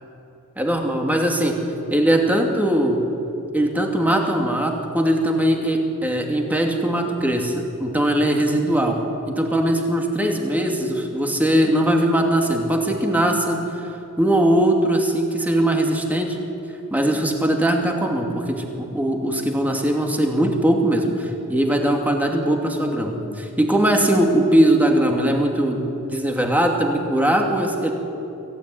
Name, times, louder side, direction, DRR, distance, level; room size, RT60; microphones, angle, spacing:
voice 1, 0.6-1.6 1.9-3.0 3.5-7.5 7.8-13.6 14.2-16.4 16.9-25.8 26.1-27.9, right 1 dB, 10° right, 1 dB, 2.6 m, -20 dB
23.5 x 16.0 x 9.6 m, 2.8 s
head